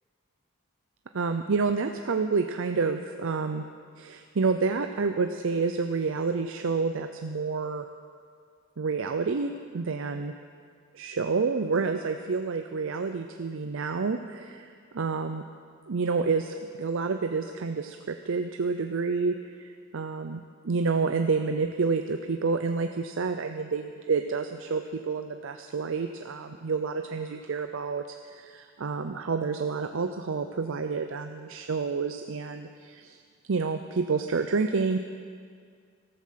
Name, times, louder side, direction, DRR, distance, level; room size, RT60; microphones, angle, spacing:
voice 1, 1.1-3.6 4.0-7.9 8.8-10.4 10.9-15.4 15.9-33.2 33.5-35.0, right 4 dB, 70° right, 6 dB, 0.6 m, -29 dB
14.0 x 13.5 x 5.8 m, 2.1 s
head